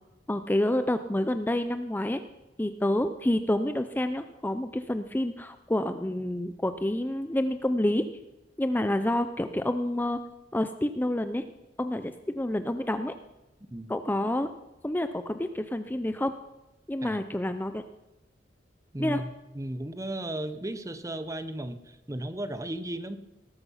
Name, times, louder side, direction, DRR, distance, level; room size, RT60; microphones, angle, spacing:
voice 1, 0.3-2.2 2.6-8.1 8.6-10.2 10.5-11.4 11.8-13.1 13.9-14.5 14.8-16.3 16.9-17.8 19.0-19.2, left 1 dB, 10° left, 9 dB, 0.5 m, -28 dB
voice 2, 18.9-19.3 19.5-23.2, right 1 dB, 20° right, 10 dB, 0.9 m, -35 dB
19.0 x 11.5 x 5.6 m, 1.0 s
head